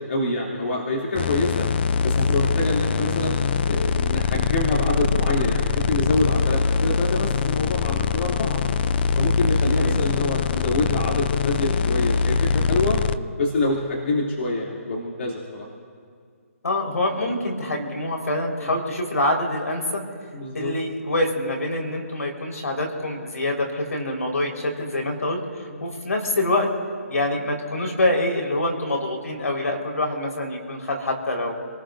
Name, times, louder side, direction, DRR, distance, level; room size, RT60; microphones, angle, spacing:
voice 1, 0.1-1.7 2.0-3.4 3.7-8.6 9.1-13.0 13.4-15.7 17.2-17.3 20.3-20.7 25.7-25.8, left 2 dB, 55° left, -3 dB, 2.9 m, -26 dB
sound 1, 1.1-13.2, left 5 dB, 40° left, 0.6 m, -23 dB
voice 2, 2.9-3.4 9.8-10.0 16.6-20.0 20.5-26.7 27.1-31.5, left 1 dB, 80° left, 1 dB, 4.5 m, -25 dB
28.5 x 19.0 x 2.7 m, 2.1 s
hypercardioid pair, 150°, 8 cm